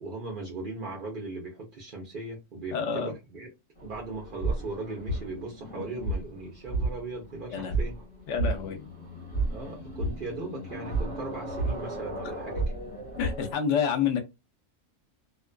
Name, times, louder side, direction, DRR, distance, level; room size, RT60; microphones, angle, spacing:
voice 1, 0.0-3.5 3.8-8.0 9.5-12.8, right 2 dB, 50° right, 0.8 m, -38 dB
voice 2, 2.7-3.1 7.5-7.7 8.3-8.9 13.2-14.2, left 7 dB, 70° left, 0.9 m, -28 dB
sound 1, 3.8-13.5, right 2 dB, 35° left, 1.0 m, -33 dB
2.4 x 2.3 x 2.2 m
omnidirectional pair, 1.3 m